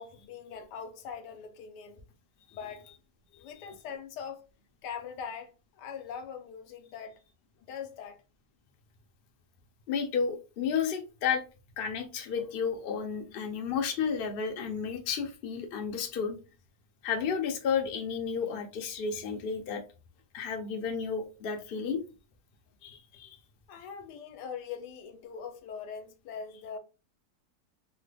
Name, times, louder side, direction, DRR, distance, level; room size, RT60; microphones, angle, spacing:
voice 1, 0.0-2.0 2.5-2.8 3.4-4.4 4.8-7.2 7.7-8.2 23.7-26.8, left 7 dB, 85° left, 1.2 m, -42 dB
voice 2, 3.3-3.7 9.9-11.4 11.8-16.4 17.0-19.8 20.3-22.0 22.8-23.4, left 6 dB, 60° left, 0.6 m, -32 dB
3.2 x 2.2 x 3.2 m
omnidirectional pair, 1.8 m